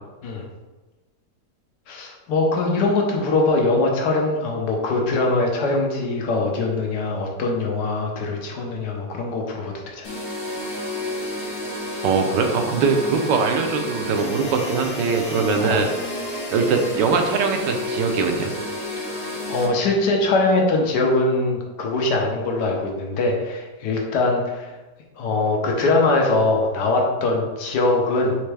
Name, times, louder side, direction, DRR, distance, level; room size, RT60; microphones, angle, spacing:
voice 1, 1.9-10.1 15.6-15.8 19.0-19.2 19.5-24.7 25.2-28.4, left 2 dB, 70° left, 0 dB, 1.3 m, -22 dB
sound 1, 10.0-19.7, left 1 dB, 50° left, 1.5 m, -30 dB
voice 2, 12.0-15.9 16.5-18.5, right 5 dB, 85° right, 4 dB, 1.3 m, -21 dB
4.3 x 3.3 x 3.3 m, 1.2 s
omnidirectional pair, 1.9 m